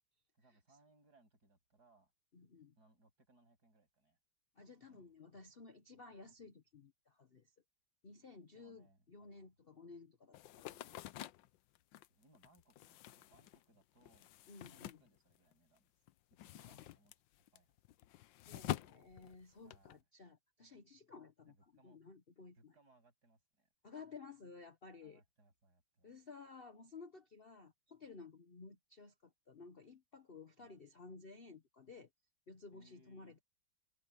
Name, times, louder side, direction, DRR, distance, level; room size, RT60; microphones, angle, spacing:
voice 1, 0.3-2.1 2.7-4.2 4.9-5.2 8.5-9.5 10.5-10.8 12.1-14.3 14.6-15.9 16.4-17.8 19.6-20.0 20.7-20.9 21.4-22.0 22.6-23.7 25.0-26.1 30.6-30.8 32.7-33.4, right 2 dB, 50° right, 8.5 m, -70 dB
voice 2, 2.3-2.7 4.6-7.5 8.0-11.2 14.5-15.0 16.6-16.8 18.4-21.5 21.8-22.7 23.8-25.2 26.0-32.1 32.5-33.4, left 4 dB, 40° left, 1.0 m, -55 dB
sound 1, 10.3-15.8 16.1-20.0, left 14 dB, 75° left, 1.3 m, -48 dB
omnidirectional pair, 2.1 m